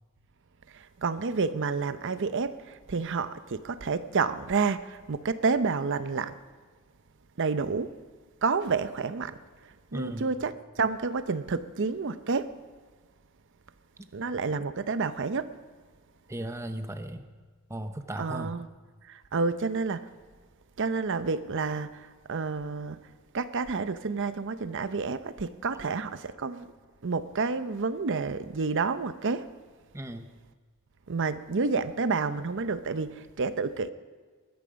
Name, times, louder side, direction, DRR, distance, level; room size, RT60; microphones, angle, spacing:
voice 1, 0.7-6.4 7.4-7.9 8.4-12.5 14.1-15.5 18.2-18.7 19.0-20.1 20.8-23.0 23.3-26.7 27.0-29.5 31.1-33.9, right 4 dB, 55° right, 0.7 m, -29 dB
voice 2, 9.9-10.3 16.3-17.2 17.7-18.6 29.9-30.2, right 1 dB, 15° right, 0.7 m, -36 dB
21.0 x 10.5 x 5.2 m
head